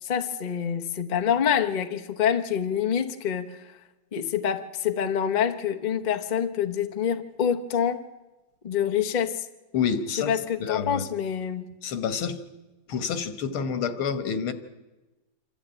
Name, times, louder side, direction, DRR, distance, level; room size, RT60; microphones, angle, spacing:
voice 1, 0.0-3.6 4.1-8.1 8.6-9.5 10.1-11.7, left 8 dB, 35° left, 0.7 m, -26 dB
voice 2, 9.7-10.3 10.6-11.1 11.8-12.4 12.9-14.5, left 6 dB, 90° left, 2.1 m, -28 dB
26.5 x 13.5 x 8.8 m
omnidirectional pair, 2.2 m